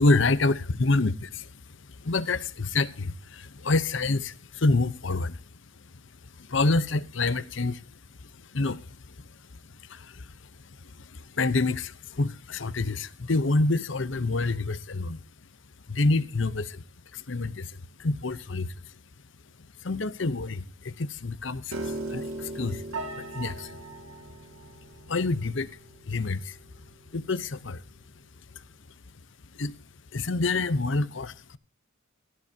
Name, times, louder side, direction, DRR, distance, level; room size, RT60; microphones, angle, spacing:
voice 1, 0.0-15.2 15.9-16.9 17.1-19.0 19.6-23.8 24.1-24.5 24.8-25.8 26.1-26.6 27.1-28.2 28.5-28.6 29.5-29.8 30.1-31.6, left 3 dB, 65° left, 0.9 m, -28 dB
Piano, 21.7-27.9, right 2 dB, 90° right, 2.2 m, -39 dB
16.5 x 13.5 x 2.9 m
head